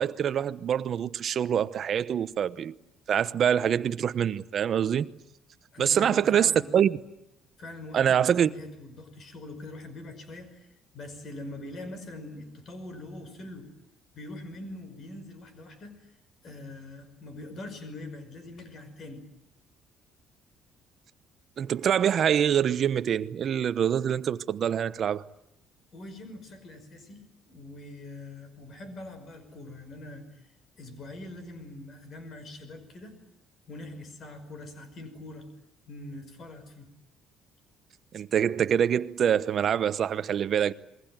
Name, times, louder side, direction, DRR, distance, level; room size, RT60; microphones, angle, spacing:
voice 1, 0.0-2.7 3.1-5.1 5.8-7.0 7.9-8.5 21.6-25.2 38.1-40.7, right 9 dB, 40° right, 1.0 m, -25 dB
voice 2, 5.7-6.7 7.6-13.7 14.1-16.0 16.4-19.2 25.9-30.5 30.8-33.1 33.7-35.5 35.9-36.9, left 2 dB, 35° left, 5.9 m, -43 dB
28.0 x 22.0 x 9.1 m
cardioid pair, 170°, 0 cm